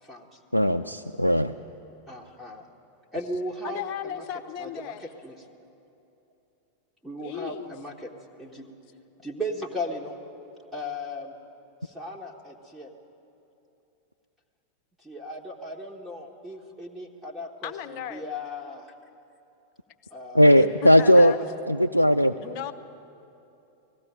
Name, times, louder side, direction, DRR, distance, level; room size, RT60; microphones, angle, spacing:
voice 1, 0.0-0.4 2.1-2.7 3.1-4.2 4.6-5.5 7.0-8.1 8.4-8.7 9.2-10.2 10.7-11.3 11.8-12.9 15.0-18.9 20.1-20.5, left 1 dB, 5° right, -2 dB, 1.6 m, -37 dB
voice 2, 0.5-1.5 20.3-21.4 21.7-22.3, equal, 90° left, 6 dB, 0.4 m, -18 dB
voice 3, 3.6-5.0 7.2-7.7 17.6-18.2 20.5-21.4 22.4-22.7, left 9 dB, 40° left, 10 dB, 1.0 m, -35 dB
19.0 x 15.5 x 8.9 m, 2.9 s
figure-of-eight pair, 90°, 0 cm